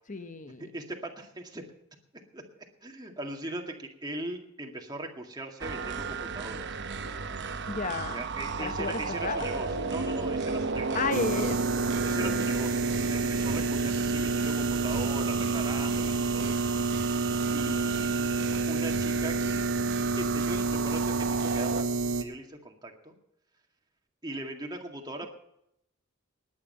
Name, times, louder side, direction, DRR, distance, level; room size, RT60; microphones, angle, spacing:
voice 1, 0.1-0.7 7.7-8.2 8.6-9.4 10.9-11.7 12.2-12.5, left 4 dB, 35° left, 10 dB, 1.0 m, -32 dB
voice 2, 0.6-1.6 2.3-2.4 2.8-6.7 8.1-11.0 11.3-11.4 12.0-16.6 17.5-18.2 18.7-19.7 20.2-21.9 22.2-23.1 24.2-25.3, right 2 dB, 20° right, 1 dB, 2.1 m, -39 dB
sound 1, 5.6-21.8, right 4 dB, 55° right, 0.9 m, -34 dB
sound 2, 11.1-22.2, right 4 dB, 85° right, 1.4 m, -29 dB
19.0 x 9.9 x 5.6 m, 0.77 s
head